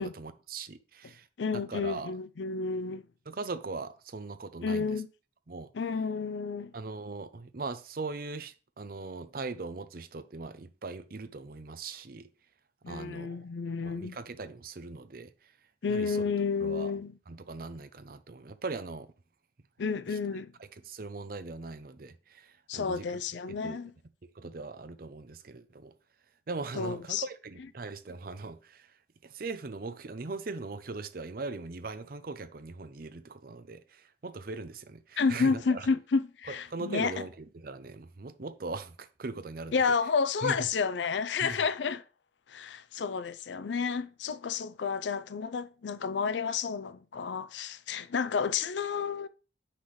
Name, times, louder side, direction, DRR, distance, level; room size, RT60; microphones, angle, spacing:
voice 1, 0.0-1.3 1.7-2.1 3.3-4.9 5.5-5.7 6.7-12.3 12.9-13.4 13.8-15.3 15.9-16.2 16.6-16.9 17.3-19.1 20.8-23.1 23.6-23.8 24.2-25.9 26.5-28.9 29.2-35.9 36.7-39.7 40.4-40.5 41.4-41.6, right 3 dB, 55° right, 0.6 m, -40 dB
voice 2, 1.4-3.0 4.6-5.1 5.7-6.7 12.8-14.2 15.8-17.1 19.8-20.5 22.7-23.9 26.7-27.2 35.2-37.2 39.7-42.0 42.5-49.3, left 5 dB, 80° left, 0.5 m, -31 dB
8.6 x 5.8 x 3.2 m
head